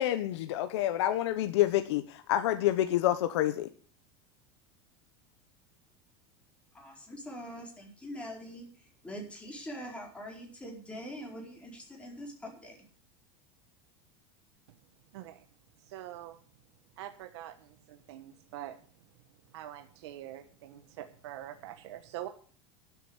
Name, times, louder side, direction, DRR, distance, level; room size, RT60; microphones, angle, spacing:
voice 1, 0.0-3.7, left 13 dB, 80° left, 9 dB, 1.1 m, -28 dB
voice 2, 6.7-12.8, equal, 10° left, 0 dB, 4.5 m, -43 dB
voice 3, 15.9-16.3 17.0-17.5 18.1-18.7 19.5-22.3, right 13 dB, 80° right, 8 dB, 1.3 m, -44 dB
12.0 x 8.1 x 8.1 m, 0.44 s
supercardioid pair, 150°, 14 cm